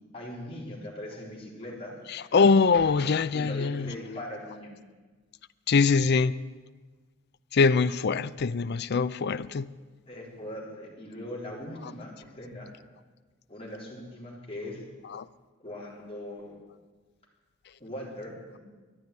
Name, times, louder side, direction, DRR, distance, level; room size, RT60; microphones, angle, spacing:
voice 1, 0.1-2.0 3.3-4.7 10.1-12.7 13.5-14.8 15.6-16.6 17.8-18.6, left 1 dB, 30° left, 4.0 m, -40 dB
voice 2, 2.1-3.9 5.7-6.3 7.5-9.7 15.1-15.2, left 4 dB, 55° left, 0.5 m, -23 dB
12.5 x 10.0 x 9.5 m
head